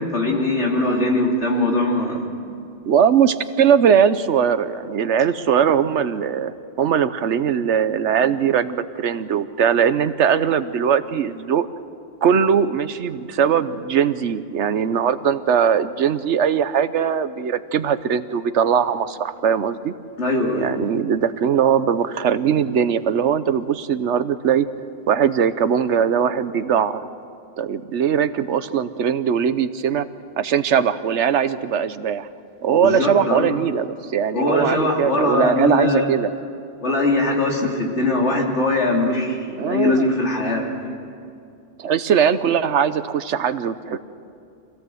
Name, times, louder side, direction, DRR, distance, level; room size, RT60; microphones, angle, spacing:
voice 1, 0.0-2.4 20.2-20.9 32.7-33.5 34.3-36.1 36.8-41.0, left 2 dB, 80° left, -1 dB, 3.3 m, -21 dB
voice 2, 2.9-11.7 12.2-19.9 20.6-24.7 25.1-27.1 27.6-30.1 30.4-32.3 32.6-36.3 39.6-40.1 41.8-44.0, right 8 dB, 85° right, 13 dB, 1.1 m, -20 dB
25.5 x 17.0 x 7.8 m, 2.5 s
omnidirectional pair, 1.2 m